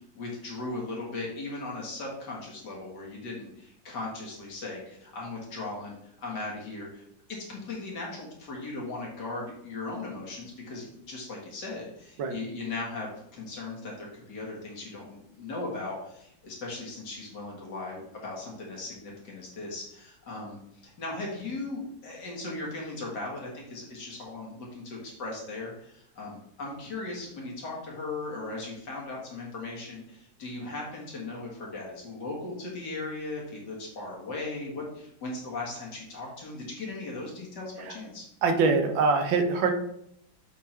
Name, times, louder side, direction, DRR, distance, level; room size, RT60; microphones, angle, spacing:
voice 1, 0.1-7.0 7.5-38.2, left 2 dB, 60° left, -3 dB, 2.3 m, -38 dB
voice 2, 38.4-39.7, right 4 dB, 80° right, 6 dB, 1.6 m, -24 dB
7.5 x 3.7 x 4.3 m, 0.73 s
omnidirectional pair, 2.1 m